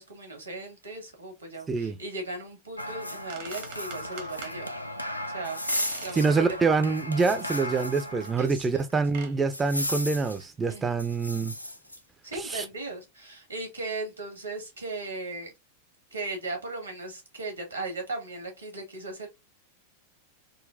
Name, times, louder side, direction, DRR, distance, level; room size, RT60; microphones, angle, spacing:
voice 1, 0.0-4.7 5.3-6.7 8.4-8.8 10.7-11.0 12.2-15.5 16.1-19.3, right 2 dB, 80° right, 1.3 m, -37 dB
sound 1, 2.8-8.5 8.8-8.9 9.5-10.4 11.0-12.0, left 1 dB, 85° left, 0.3 m, -35 dB
sound 2, 3.0-3.1 3.3-4.6 5.7-6.2 6.6-6.7 7.4-7.5 8.2-8.4 9.0-9.4, right 6 dB, 50° right, 0.7 m, -43 dB
voice 2, 6.1-11.5 12.3-12.7, right 4 dB, 15° right, 0.3 m, -26 dB
3.8 x 2.1 x 2.4 m
figure-of-eight pair, 90°, 0 cm